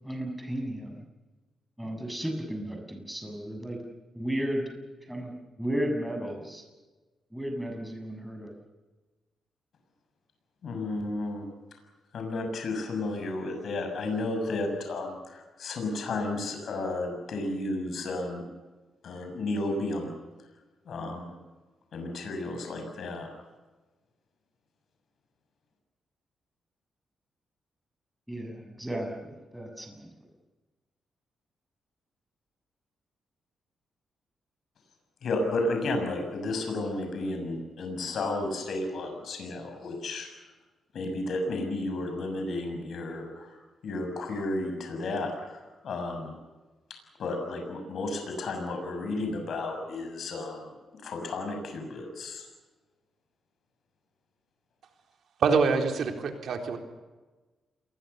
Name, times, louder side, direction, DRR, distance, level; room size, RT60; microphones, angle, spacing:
voice 1, 0.0-1.0 1.8-3.8 4.2-4.6 5.1-6.6 7.3-8.5 28.3-30.1, equal, 5° right, 3 dB, 7.2 m, -34 dB
voice 2, 10.6-11.4 12.1-18.4 19.0-20.1 20.9-21.3 21.9-23.3 35.2-40.3 40.9-43.6 43.8-46.3 47.2-50.7 51.0-52.5, left 2 dB, 65° left, 4 dB, 6.8 m, -32 dB
voice 3, 55.4-56.8, right 5 dB, 70° right, 4 dB, 3.9 m, -25 dB
28.5 x 22.0 x 6.9 m, 1.2 s
cardioid pair, 105°, 0 cm